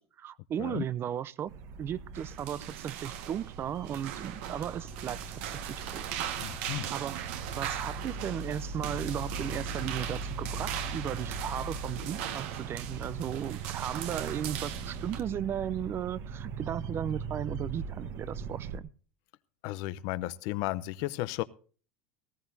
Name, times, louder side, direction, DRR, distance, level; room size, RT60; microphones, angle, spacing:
voice 1, 0.0-1.5 1.8-6.0 6.9-7.2 7.5-18.9, right 9 dB, 35° right, 0.6 m, -36 dB
sound 1, 1.5-18.8, right 4 dB, 60° right, 1.3 m, -40 dB
sound 2, 2.1-15.2, right 11 dB, 75° right, 1.5 m, -40 dB
voice 2, 6.4-6.9 19.6-21.4, left 17 dB, 65° left, 0.7 m, -34 dB
18.0 x 14.0 x 2.7 m
supercardioid pair, 115°, 7 cm